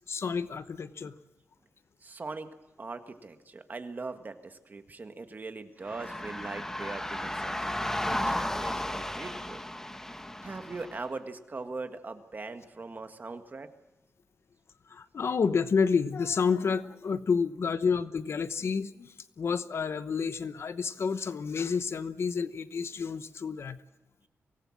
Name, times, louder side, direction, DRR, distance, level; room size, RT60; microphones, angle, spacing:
voice 1, 0.1-1.1 14.9-23.8, left 5 dB, 60° left, 13 dB, 1.0 m, -29 dB
voice 2, 2.0-2.5 2.8-7.8 8.0-9.6 10.4-13.7, right 3 dB, 35° right, 8 dB, 1.8 m, -41 dB
sound 1, 5.9-11.0, left 1 dB, 10° left, 1.4 m, -34 dB
24.0 x 18.5 x 7.4 m, 1.0 s
wide cardioid pair, 105°, 5 cm